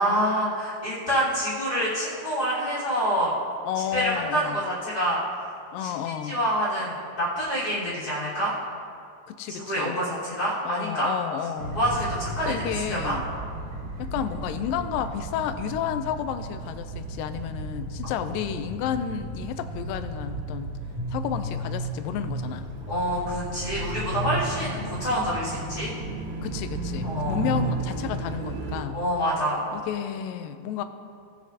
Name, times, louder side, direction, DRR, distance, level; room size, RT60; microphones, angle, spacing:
voice 1, 0.0-3.3 3.9-5.2 5.8-8.5 9.5-11.1 11.7-12.5 12.9-13.2 18.0-18.1 22.9-25.9 27.0-27.4 28.9-29.6, equal, 30° left, -10 dB, 3.2 m, -27 dB
voice 2, 3.7-4.7 5.7-6.4 9.3-10.0 10.6-11.8 12.4-13.2 14.0-20.7 21.1-22.7 26.4-29.0 29.7-30.8, left 9 dB, 85° left, 10 dB, 2.3 m, -31 dB
sound 1, 11.6-28.8, right 2 dB, 90° right, 2.9 m, -33 dB
19.0 x 8.2 x 2.8 m, 2.3 s
omnidirectional pair, 3.9 m